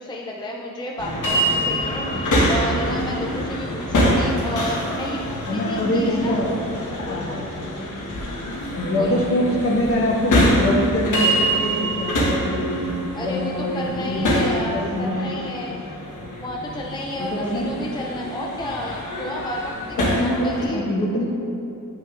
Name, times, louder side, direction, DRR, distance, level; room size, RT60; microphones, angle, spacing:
voice 1, 0.0-6.4 6.9-7.4 9.0-9.2 13.1-15.8 16.4-20.8, left 1 dB, 15° left, -1 dB, 0.4 m, -32 dB
sound 1, 1.0-20.7, equal, 70° left, 1.3 m, -25 dB
voice 2, 5.5-6.6 7.1-7.5 8.7-12.9 13.2-15.4 17.2-17.8 20.0-21.3, left 1 dB, 45° left, -4 dB, 1.3 m, -24 dB
7.8 x 6.2 x 2.5 m, 2.9 s
cardioid pair, 90°, 32 cm